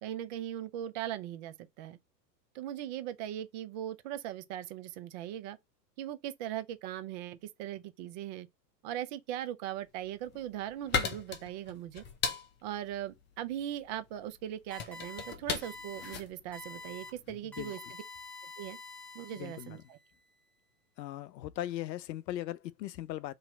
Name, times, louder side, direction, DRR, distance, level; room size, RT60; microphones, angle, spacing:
voice 1, 0.0-2.0 2.5-5.6 6.0-8.5 8.8-12.0 12.6-17.8 18.6-18.8 19.1-20.0, right 12 dB, 30° right, 0.3 m, -39 dB
sound 1, 10.0-17.5, left 6 dB, 20° left, 0.7 m, -38 dB
sound 2, 14.7-15.3 15.6-16.2 16.5-17.1 17.5-19.8, left 2 dB, 5° left, 1.5 m, -47 dB
voice 2, 17.4-17.7 19.3-19.8 21.0-23.3, left 13 dB, 80° left, 0.6 m, -39 dB
3.1 x 2.9 x 4.1 m
hypercardioid pair, 110°, 50 cm